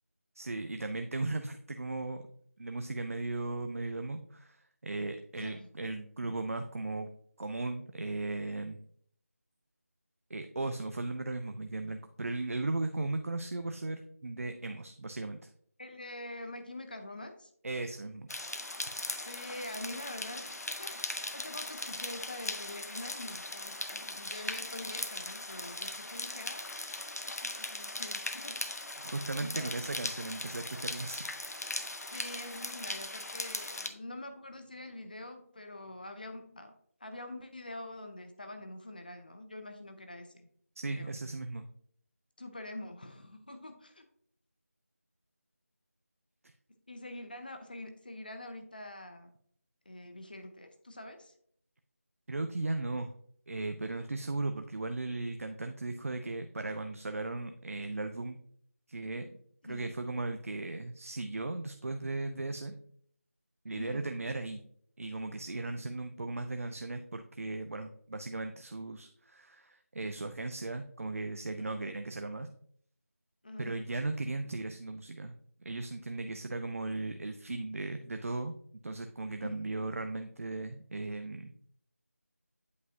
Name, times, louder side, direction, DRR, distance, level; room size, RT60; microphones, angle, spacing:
voice 1, 0.3-2.2 2.6-7.1 7.4-8.8 10.3-15.4 17.6-18.3 19.4-19.6 29.0-31.2 40.8-41.6 52.3-53.1 53.5-58.4 58.9-59.3 59.6-62.7 63.6-64.6 65.0-72.5 73.6-75.3 75.6-78.5 78.8-81.5, right 2 dB, 60° right, 8 dB, 0.5 m, -37 dB
voice 2, 5.4-5.7 15.8-17.5 19.2-29.1 29.4-29.8 32.0-36.8 37.0-40.5 40.9-41.1 42.4-44.1 46.9-49.3 49.9-51.3 59.6-59.9 63.7-64.1 71.6-71.7 73.4-73.7 79.4-79.7, left 1 dB, 35° left, 7 dB, 0.5 m, -45 dB
sound 1, 18.3-33.9, left 2 dB, 85° left, 0.8 m, -39 dB
8.2 x 4.8 x 2.7 m, 0.64 s
figure-of-eight pair, 175°, 8 cm